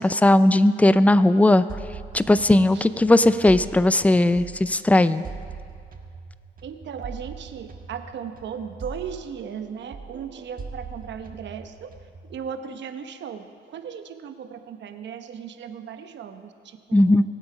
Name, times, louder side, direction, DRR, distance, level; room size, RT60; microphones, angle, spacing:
voice 1, 0.0-1.6 2.1-5.2 16.9-17.2, left 1 dB, 5° left, 14 dB, 0.4 m, -17 dB
sound 1, 1.7-4.8 5.2-9.7 9.9-12.4, right 4 dB, 45° right, 1.4 m, -41 dB
voice 2, 6.6-11.9 12.3-17.2, right 7 dB, 65° right, 8 dB, 1.0 m, -37 dB
22.0 x 8.1 x 4.9 m, 2.2 s
cardioid pair, 90°, 20 cm